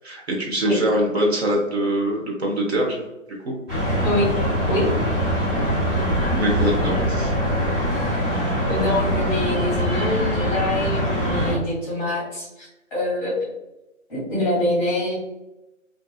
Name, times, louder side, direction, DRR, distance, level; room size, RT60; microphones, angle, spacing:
voice 1, 0.0-3.0 3.4-3.5 6.3-7.3, right 1 dB, 55° right, -1 dB, 0.7 m, -23 dB
sound 1, 3.7-11.6, equal, 20° right, 1.0 m, -23 dB
voice 2, 8.7-13.4 14.1-15.1, left 1 dB, 5° left, -10 dB, 1.0 m, -25 dB
2.6 x 2.3 x 2.3 m, 0.97 s
figure-of-eight pair, 150°, 40 cm